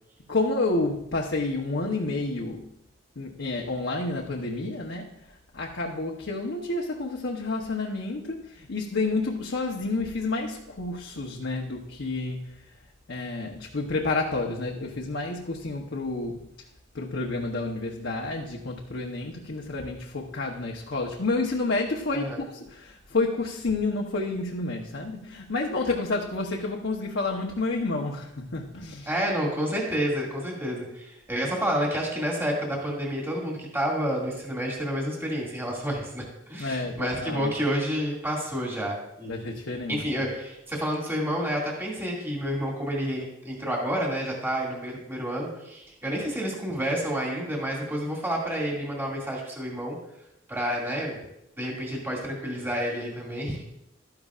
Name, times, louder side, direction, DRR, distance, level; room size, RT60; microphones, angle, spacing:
voice 1, 0.3-2.7 3.2-5.1 5.5-12.5 13.1-16.4 16.9-29.1 36.6-37.5 39.3-40.0, left 3 dB, 70° left, -1 dB, 1.0 m, -29 dB
voice 2, 29.1-39.5 39.9-50.0 50.5-51.2 51.6-53.6, equal, 10° right, -3 dB, 2.2 m, -29 dB
12.5 x 10.5 x 2.5 m, 0.82 s
head